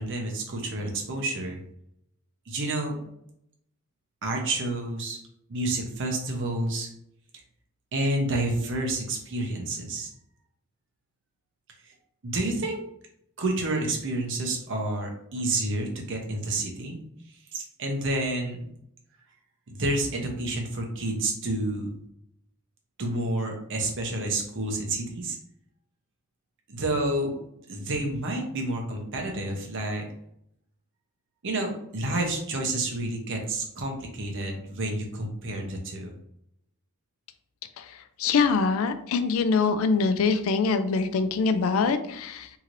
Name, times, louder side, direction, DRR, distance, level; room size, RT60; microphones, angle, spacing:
voice 1, 0.0-1.6 2.5-3.0 4.2-5.2 5.5-6.9 7.9-10.1 12.2-12.8 13.4-17.0 17.5-18.6 19.7-22.0 23.0-25.4 26.7-27.3 27.7-30.0 31.4-36.1, right 2 dB, 55° right, 2 dB, 0.7 m, -29 dB
voice 2, 37.8-42.5, left 4 dB, 65° left, 10 dB, 0.3 m, -24 dB
3.0 x 2.8 x 2.5 m, 0.74 s
head